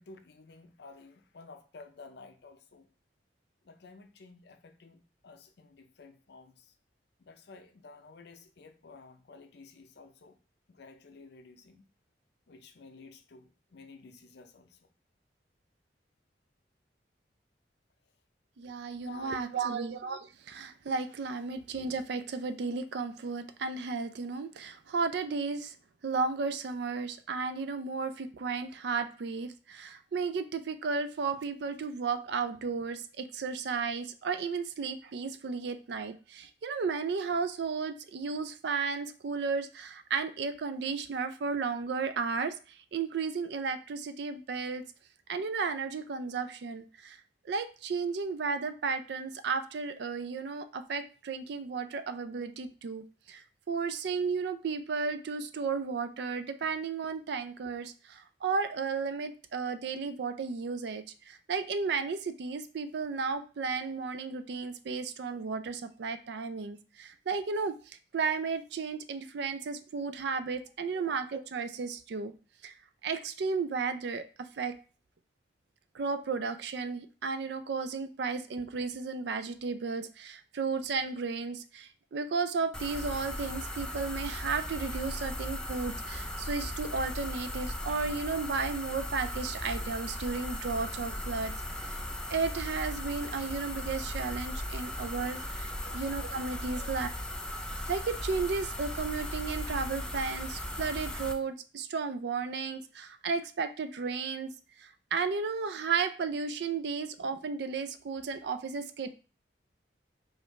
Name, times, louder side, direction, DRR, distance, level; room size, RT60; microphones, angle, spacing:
voice 1, 0.0-2.9 3.6-6.7 7.2-10.4 10.7-11.9 12.5-14.9 19.0-19.8 95.8-96.0 96.7-96.9, left 4 dB, 60° left, 0.5 m, -52 dB
voice 2, 18.6-25.7 26.0-44.8 45.3-47.2 47.4-72.3 72.6-72.7 73.0-74.7 75.9-97.1 97.9-104.5 104.8-109.1, right 4 dB, 60° right, 0.4 m, -34 dB
sound 1, 82.7-101.3, left 1 dB, 5° left, 0.4 m, -37 dB
4.9 x 2.5 x 3.1 m
head